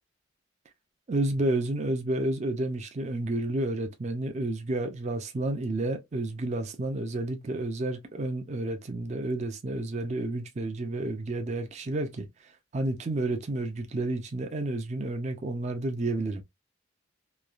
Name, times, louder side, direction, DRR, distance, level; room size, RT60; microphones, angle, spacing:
voice 1, 1.1-16.4, right 2 dB, 35° right, 0.4 m, -30 dB
3.1 x 2.3 x 2.4 m
head